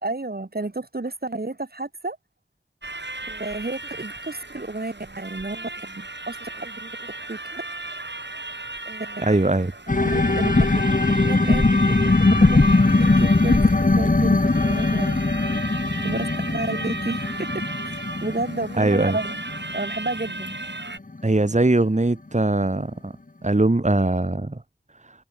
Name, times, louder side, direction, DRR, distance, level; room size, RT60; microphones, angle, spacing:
voice 1, 0.0-2.2 3.3-7.6 8.9-9.6 9.9-15.2 15.4-19.4 19.7-20.6, right 2 dB, 60° right, 1.9 m, -32 dB
sound 1, 2.8-21.0, right 2 dB, 75° right, 4.7 m, -35 dB
voice 2, 9.2-9.7 18.8-19.2 21.2-23.1 23.4-24.6, right 2 dB, 40° right, 1.5 m, -21 dB
sound 2, 9.9-21.2 21.6-21.7, left 2 dB, 45° left, 1.1 m, -20 dB
wide cardioid pair, 40°, 18 cm